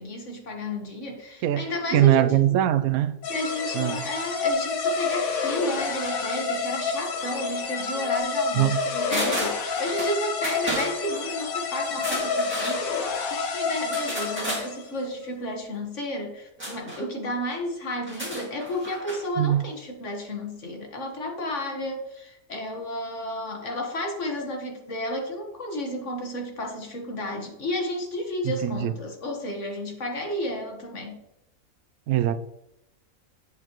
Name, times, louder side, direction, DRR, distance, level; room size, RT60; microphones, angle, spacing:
voice 1, 0.0-2.6 3.3-31.2, left 1 dB, 60° left, 1.7 m, -32 dB
voice 2, 1.9-3.2 3.7-4.0 8.6-8.8 19.4-19.6 28.4-28.9 32.1-32.3, right 13 dB, 85° right, 1.0 m, -21 dB
sound 1, 3.2-14.9, left 5 dB, 75° left, 1.4 m, -29 dB
sound 2, 9.1-10.1 10.4-10.9 11.9-12.8 13.9-14.7 16.6-17.0 18.0-19.2 19.5-19.6, right 1 dB, 10° right, 2.1 m, -32 dB
7.9 x 7.6 x 3.0 m
omnidirectional pair, 1.5 m